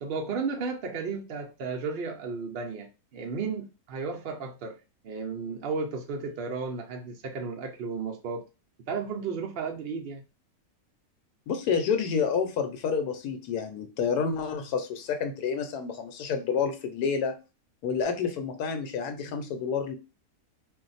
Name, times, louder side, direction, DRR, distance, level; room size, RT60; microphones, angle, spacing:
voice 1, 0.0-4.8 5.0-8.4 8.9-10.2, right 4 dB, 75° right, 1 dB, 0.5 m, -34 dB
voice 2, 11.5-17.3 17.8-20.0, left 6 dB, 80° left, 7 dB, 1.1 m, -29 dB
2.5 x 2.2 x 3.9 m, 0.30 s
omnidirectional pair, 1.6 m